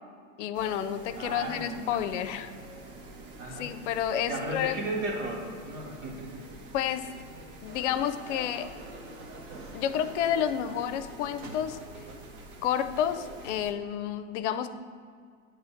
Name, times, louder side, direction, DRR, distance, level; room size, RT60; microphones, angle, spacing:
voice 1, 0.4-2.5 3.6-4.7 6.7-7.1 7.6-8.7 9.7-11.8 12.6-14.7, left 10 dB, 65° left, 11 dB, 0.6 m, -30 dB
sound 1, 0.5-13.7, right 2 dB, 50° right, 1.2 m, -47 dB
voice 2, 1.1-2.6 3.4-3.7 4.3-6.4, right 2 dB, 80° right, -2 dB, 1.9 m, -36 dB
sound 2, 7.7-13.5, right 2 dB, 35° right, 1.0 m, -47 dB
8.8 x 3.4 x 5.7 m, 2.1 s
hypercardioid pair, 100°, 38 cm